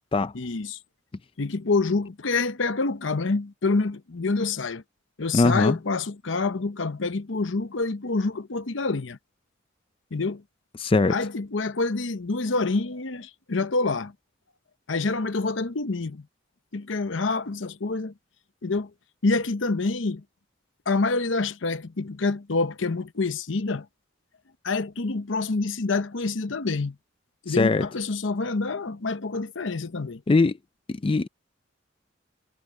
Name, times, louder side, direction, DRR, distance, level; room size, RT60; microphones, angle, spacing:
voice 1, 0.3-0.8 1.4-4.8 5.2-9.2 10.1-10.4 11.1-14.1 14.9-16.3 16.7-18.1 18.6-18.9 19.2-20.2 20.9-23.9 24.6-27.0 27.4-30.2, left 3 dB, 70° left, 0.9 m, -27 dB
voice 2, 5.3-5.8 10.8-11.2 27.5-27.9 30.3-30.6 30.9-31.3, left 3 dB, 25° left, 0.4 m, -21 dB
head